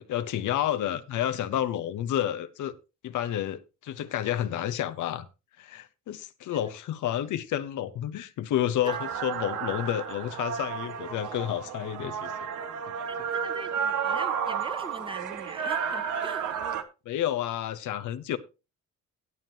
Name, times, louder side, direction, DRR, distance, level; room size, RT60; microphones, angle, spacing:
voice 1, 0.0-2.7 3.0-5.3 5.6-12.3 17.0-18.4, left 11 dB, 80° left, 1.0 m, -30 dB
sound 1, 8.9-16.8, right 7 dB, 80° right, 1.6 m, -32 dB
voice 2, 13.1-16.6, right 2 dB, 15° right, 1.3 m, -43 dB
17.5 x 7.3 x 2.9 m
cardioid pair, 90°, 30 cm